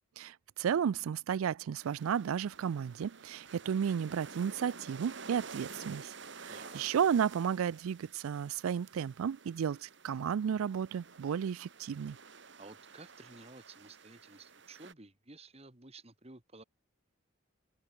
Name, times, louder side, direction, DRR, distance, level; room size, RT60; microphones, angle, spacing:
voice 1, 0.2-12.2, right 8 dB, 85° right, 0.4 m, -33 dB
sound 1, 1.8-14.9, right 5 dB, 60° right, 2.0 m, -51 dB
voice 2, 6.5-6.8 12.6-16.6, right 3 dB, 30° right, 1.9 m, -53 dB
head